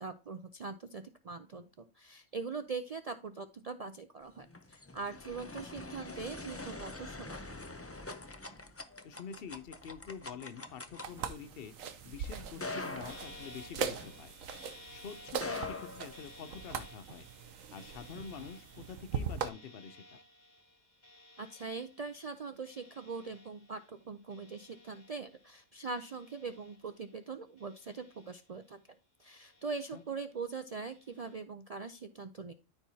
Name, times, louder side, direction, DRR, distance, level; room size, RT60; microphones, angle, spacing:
voice 1, 0.0-7.6 21.4-28.8 29.2-32.5, right 4 dB, 70° right, 0.3 m, -42 dB
sound 1, 4.3-14.7 15.2-16.8, left 2 dB, 15° left, 0.5 m, -44 dB
voice 2, 9.0-11.7 12.0-14.3 14.9-17.3 17.7-20.2 29.9-30.0, left 7 dB, 55° left, 0.8 m, -47 dB
sound 2, 11.0-19.5, right 7 dB, 85° right, 1.2 m, -41 dB
sound 3, 13.1-25.6 25.9-27.2 27.6-28.8 29.2-30.3 30.8-31.4, left 1 dB, 35° left, 1.5 m, -57 dB
13.0 x 4.6 x 2.7 m
omnidirectional pair, 1.3 m